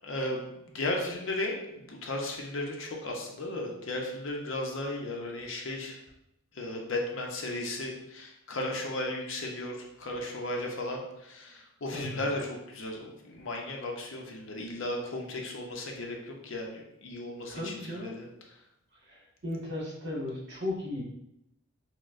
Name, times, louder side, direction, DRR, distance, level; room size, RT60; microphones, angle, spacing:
voice 1, 0.0-0.4 0.7-6.0 6.5-18.3, left 1 dB, 60° left, 0 dB, 0.6 m, -35 dB
voice 2, 11.9-12.3 17.5-18.2 19.0-21.0, left 1 dB, 55° right, -4 dB, 1.3 m, -36 dB
6.0 x 2.1 x 2.5 m, 0.82 s
head